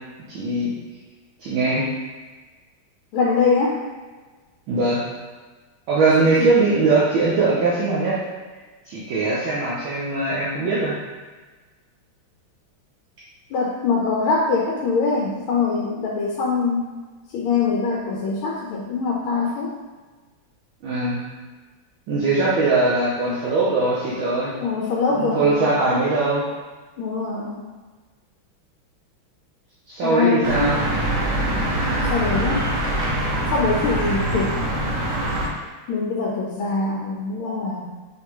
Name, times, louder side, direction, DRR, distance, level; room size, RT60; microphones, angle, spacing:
voice 1, 0.3-0.7 1.4-1.9 4.7-5.1 5.9-8.2 8.9-11.0 20.8-21.2 22.1-24.5 25.1-26.4 29.9-30.8, right 3 dB, 75° right, -8 dB, 1.6 m, -21 dB
voice 2, 3.1-3.8 6.2-6.6 13.5-16.9 17.3-19.7 24.6-25.7 27.0-27.6 30.0-30.7 32.1-32.7 33.5-34.6 35.9-38.0, left 4 dB, 85° left, -3 dB, 1.5 m, -23 dB
sound 1, 30.4-35.5, right 1 dB, 60° right, 0.9 m, -23 dB
5.1 x 3.3 x 3.0 m, 1.3 s
omnidirectional pair, 2.3 m